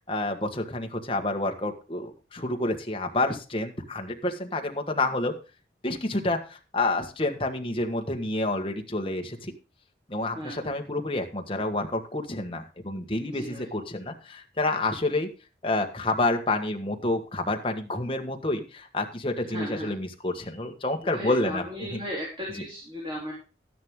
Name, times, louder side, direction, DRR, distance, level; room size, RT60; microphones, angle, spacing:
voice 1, 0.1-5.3 5.8-9.5 10.1-15.3 15.6-21.6 21.9-22.0, left 2 dB, 30° left, 4 dB, 1.5 m, -29 dB
voice 2, 10.3-10.8 13.2-13.7 19.4-20.0 21.0-23.3, equal, 25° right, -3 dB, 3.7 m, -36 dB
12.5 x 10.5 x 3.7 m, 0.33 s
head